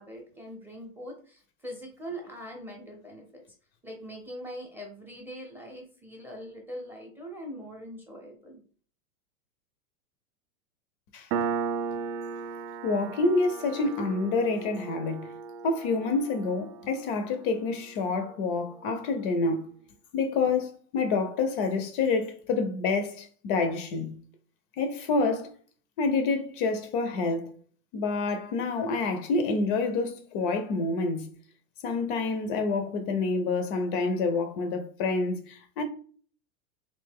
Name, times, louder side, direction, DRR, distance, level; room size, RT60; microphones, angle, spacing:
voice 1, 0.0-3.4 3.8-8.6, equal, 5° right, 0.6 m, -42 dB
Piano, 11.3-18.5, right 6 dB, 60° right, 0.5 m, -36 dB
voice 2, 12.8-15.3 15.6-19.7 20.1-24.1 24.8-25.5 26.0-27.5 27.9-31.3 31.8-35.8, left 3 dB, 40° left, 0.6 m, -28 dB
3.2 x 2.7 x 3.4 m
hypercardioid pair, 135°, 43 cm